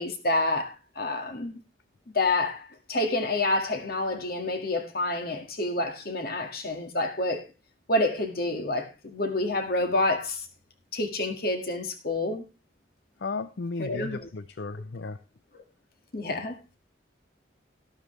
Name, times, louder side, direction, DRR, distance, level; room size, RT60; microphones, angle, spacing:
voice 1, 0.0-1.6 2.1-7.4 7.9-10.5 10.9-12.4 13.8-14.3 16.1-16.6, left 2 dB, 55° left, 2.0 m, -28 dB
voice 2, 13.2-15.2, left 4 dB, 70° left, 0.5 m, -34 dB
12.5 x 12.0 x 3.3 m
head